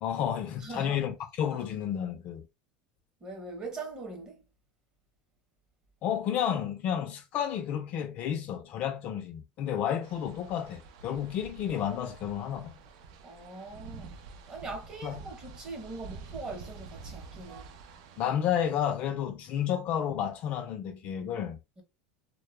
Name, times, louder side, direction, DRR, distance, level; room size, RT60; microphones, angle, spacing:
voice 1, 0.0-2.4 6.0-12.8 15.0-15.2 18.2-21.6, left 9 dB, 40° left, 0.4 m, -31 dB
voice 2, 0.6-1.0 3.2-4.4 13.2-17.7 21.8-21.9, right 3 dB, 25° right, 0.7 m, -41 dB
sound 1, 10.0-18.2, right 4 dB, 70° right, 0.4 m, -48 dB
2.1 x 2.0 x 3.0 m
supercardioid pair, 155°, 4 cm